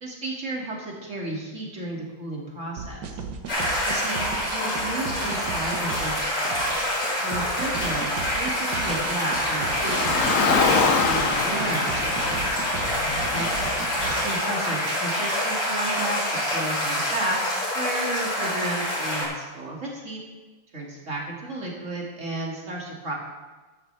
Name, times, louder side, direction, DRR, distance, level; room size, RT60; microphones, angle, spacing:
voice 1, 0.0-3.2 3.8-6.9 7.2-12.6 13.3-13.7 14.2-16.3 16.5-17.4 17.7-20.2 20.7-23.1, right 2 dB, 35° right, -2 dB, 2.7 m, -33 dB
sound 1, 2.8-14.2, right 5 dB, 60° right, 1.5 m, -36 dB
sound 2, 3.5-19.2, equal, 35° left, 4.9 m, -26 dB
Car, 9.5-13.9, left 5 dB, 55° left, 1.0 m, -25 dB
12.5 x 12.5 x 3.4 m, 1.3 s
omnidirectional pair, 2.3 m